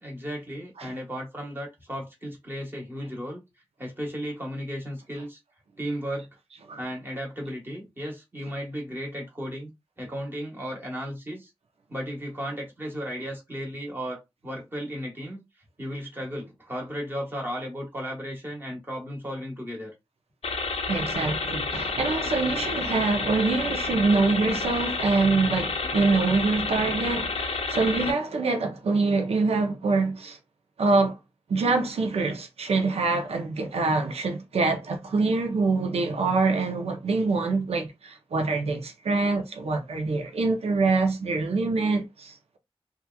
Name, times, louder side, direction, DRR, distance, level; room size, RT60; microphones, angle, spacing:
voice 1, 0.0-3.4 3.8-5.4 5.8-6.3 6.8-9.7 10.0-11.5 11.9-15.4 15.8-19.9, equal, 20° right, 1.1 m, -35 dB
sound 1, 20.4-28.1, left 3 dB, 80° left, 0.5 m, -30 dB
voice 2, 20.9-30.4 30.8-31.2 31.5-42.6, right 3 dB, 85° right, 0.5 m, -25 dB
2.7 x 2.3 x 2.3 m
wide cardioid pair, 105°, 10 cm